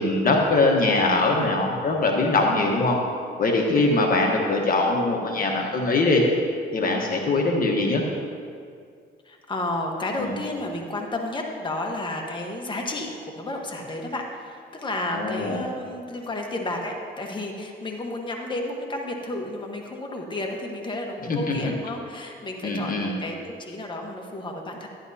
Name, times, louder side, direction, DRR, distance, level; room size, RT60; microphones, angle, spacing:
voice 1, 0.0-3.0 3.4-6.2 6.7-8.0 10.2-10.3 15.2-15.6 21.3-21.7 22.6-23.1, left 2 dB, 45° left, 1 dB, 1.2 m, -22 dB
voice 2, 9.2-24.9, left 1 dB, 25° left, 1 dB, 1.2 m, -32 dB
11.5 x 11.0 x 2.8 m, 2.2 s
cardioid pair, 90°, 20 cm